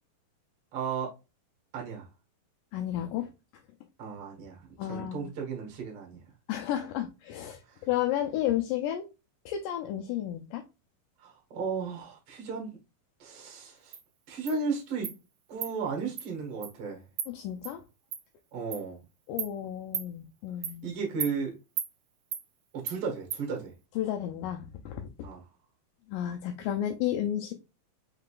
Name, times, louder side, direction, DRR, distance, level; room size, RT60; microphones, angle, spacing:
voice 1, 0.7-1.1 1.7-2.1 4.0-6.2 7.6-7.9 11.2-12.7 13.2-14.0 14.3-15.1 15.5-17.0 18.5-19.0 20.8-21.6 22.7-23.7 25.2-25.4, right 5 dB, 50° right, 2.1 m, -35 dB
voice 2, 2.7-3.3 4.8-5.3 6.5-9.1 9.5-10.6 17.3-17.8 19.3-21.0 24.0-25.1 26.1-27.5, left 11 dB, 80° left, 2.0 m, -32 dB
Insect, 13.9-14.0 14.5-14.6 15.0-15.2 15.6-15.7 16.2-16.3 16.6-16.7 17.2-17.3 17.6-17.7 18.1-18.2 18.7-18.8 19.4-19.5 19.9-20.1 20.6-20.8 21.2-21.3 21.8-21.9 22.3-22.4 22.9-23.0 23.3-23.4, right 9 dB, 80° right, 1.6 m, -34 dB
5.6 x 3.8 x 2.4 m
omnidirectional pair, 4.3 m